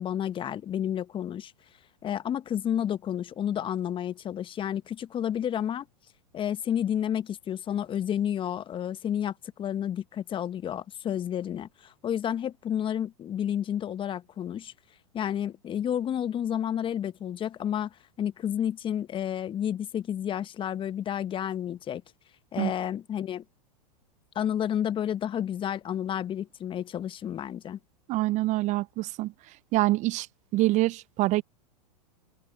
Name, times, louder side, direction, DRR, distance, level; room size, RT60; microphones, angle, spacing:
voice 1, 0.0-1.5 2.0-5.9 6.3-14.7 15.1-22.0 22.5-23.4 24.3-27.8, left 10 dB, 25° left, 1.2 m, -31 dB
voice 2, 28.1-29.3 29.7-30.3 30.5-31.4, right 18 dB, 35° right, 0.9 m, -25 dB
figure-of-eight pair, 100°, 21 cm